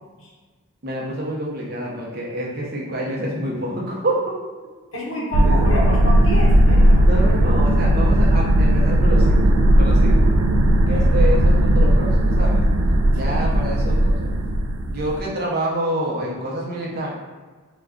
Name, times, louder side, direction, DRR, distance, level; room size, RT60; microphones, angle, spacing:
voice 1, 0.8-4.4 4.9-5.7 7.0-10.3 10.9-12.6 13.1-14.3 14.9-17.1, right 1 dB, 45° right, -3 dB, 0.6 m, -27 dB
voice 2, 4.9-7.0 10.9-11.1 13.2-13.4, equal, 70° left, -3 dB, 0.6 m, -28 dB
sound 1, 5.3-15.2, right 1 dB, 85° right, 0.3 m, -16 dB
2.4 x 2.2 x 3.6 m, 1.4 s
head